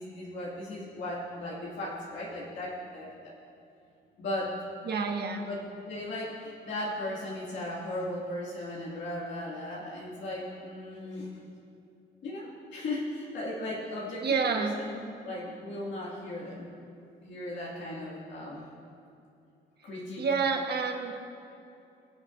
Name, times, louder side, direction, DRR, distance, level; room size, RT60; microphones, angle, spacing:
voice 1, 0.0-3.3 4.2-4.5 5.4-11.3 12.2-16.7 17.2-18.6 19.8-20.3, left 1 dB, 70° left, -7 dB, 2.4 m, -37 dB
voice 2, 4.8-5.5 14.2-14.8 20.2-21.2, right 5 dB, 55° right, 3 dB, 1.3 m, -28 dB
22.0 x 7.4 x 2.7 m, 2.7 s
cardioid pair, 90°, 20 cm